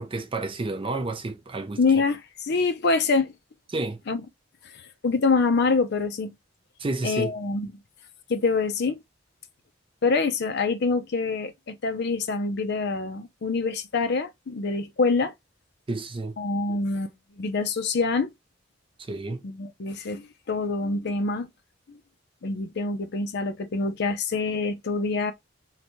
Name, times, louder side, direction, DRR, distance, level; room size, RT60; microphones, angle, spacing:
voice 1, 0.0-1.8 3.7-4.0 6.8-7.3 15.9-16.4 19.0-19.4, right 2 dB, 25° right, 0.5 m, -30 dB
voice 2, 1.8-3.3 4.1-4.2 5.0-6.3 7.0-7.7 8.3-9.0 10.0-15.3 16.4-18.3 19.4-21.5 21.9-22.0 22.4-25.3, left 4 dB, 60° left, 0.6 m, -25 dB
3.8 x 2.2 x 2.9 m
head